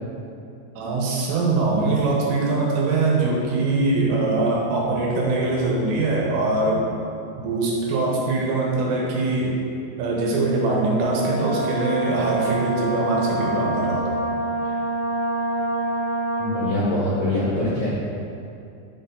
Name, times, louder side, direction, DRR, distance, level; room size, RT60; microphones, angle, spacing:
voice 1, 0.8-6.9 7.4-9.6 10.0-14.2 14.6-14.8, right 3 dB, 85° right, -3 dB, 3.8 m, -22 dB
Brass instrument, 11.0-16.8, right 1 dB, 60° right, 2.2 m, -26 dB
voice 2, 16.4-17.9, left 1 dB, 90° left, -9 dB, 1.5 m, -23 dB
10.5 x 4.3 x 4.0 m, 2.6 s
omnidirectional pair, 5.5 m